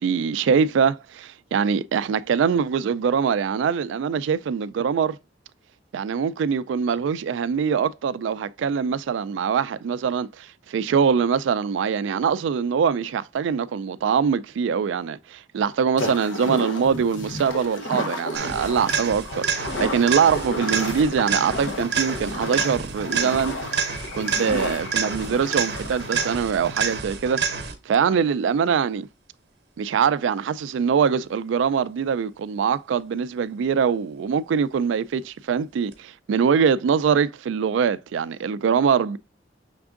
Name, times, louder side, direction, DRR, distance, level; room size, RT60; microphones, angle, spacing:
voice 1, 0.0-5.2 5.9-23.5 24.1-27.4 27.9-29.1 29.8-39.2, right 6 dB, 75° right, 0.3 m, -23 dB
sound 1, 16.0-27.0, left 1 dB, 85° left, 0.9 m, -32 dB
sound 2, 18.3-28.0 35.9-36.0, right 6 dB, 60° right, 0.8 m, -28 dB
5.9 x 3.5 x 2.4 m
head